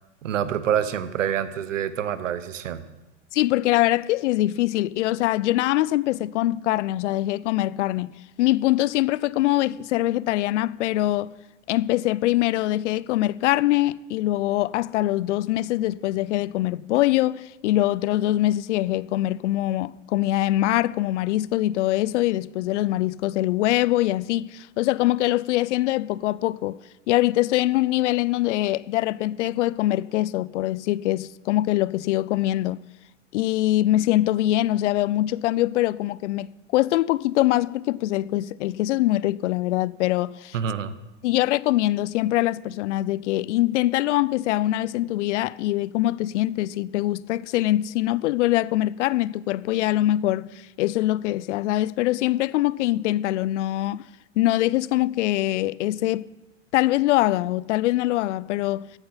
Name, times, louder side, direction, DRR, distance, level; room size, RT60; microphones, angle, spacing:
voice 1, 0.2-2.8 40.5-40.9, right 9 dB, 85° right, 1.0 m, -26 dB
voice 2, 3.3-8.1 8.4-11.3 11.7-26.8 27.1-32.8 33.3-40.6 41.2-54.0 54.4-56.3 56.7-58.9, left 15 dB, 75° left, 0.5 m, -23 dB
14.0 x 7.9 x 5.6 m
hypercardioid pair, 115°, 37 cm